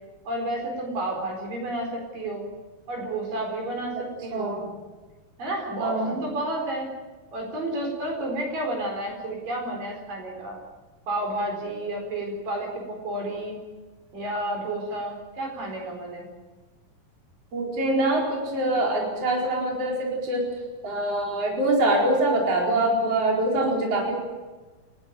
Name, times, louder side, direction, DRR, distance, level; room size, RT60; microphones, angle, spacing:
voice 1, 0.2-2.5 2.9-4.6 5.4-6.9 7.3-10.6 11.1-13.6 14.1-16.3, right 1 dB, 65° right, 1 dB, 6.1 m, -31 dB
voice 2, 4.3-4.7 5.8-6.1 17.5-20.5 20.8-24.2, right 1 dB, 40° right, -2 dB, 5.4 m, -24 dB
29.5 x 13.5 x 9.2 m, 1.3 s
omnidirectional pair, 4.2 m